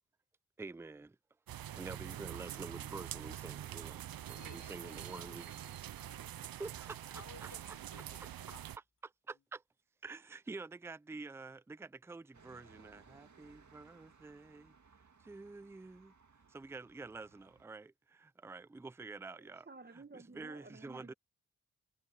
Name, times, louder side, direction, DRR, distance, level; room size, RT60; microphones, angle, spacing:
voice 1, 0.6-1.2 1.7-5.5 6.6-7.5 9.0-9.6 10.0-14.7 15.2-16.1 16.5-19.7 20.1-21.1, right 3 dB, 5° right, 0.4 m, -48 dB
sound 1, 1.5-8.8, right 12 dB, 75° right, 0.7 m, -45 dB
voice 2, 4.3-8.7 9.3-9.4, left 6 dB, 60° left, 4.2 m, -60 dB
Explosion, 6.7-8.7, left 2 dB, 25° left, 4.2 m, -69 dB
sound 2, 12.3-17.6, right 5 dB, 55° right, 2.5 m, -63 dB
voice 3, 19.3-21.1, right 3 dB, 30° right, 1.7 m, -54 dB
cardioid pair, 65°, 35 cm